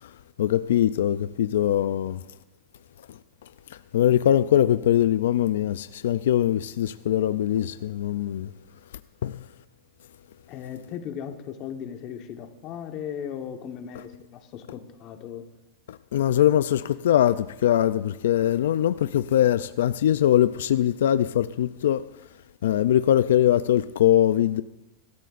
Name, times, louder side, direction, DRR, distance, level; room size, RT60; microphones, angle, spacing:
voice 1, 0.0-2.2 3.1-8.5 9.2-9.5 15.9-22.3 22.6-24.6, left 11 dB, 90° left, 0.4 m, -22 dB
voice 2, 10.5-15.4, left 8 dB, 35° left, 1.2 m, -37 dB
22.5 x 13.0 x 2.5 m
supercardioid pair, 165°, 0 cm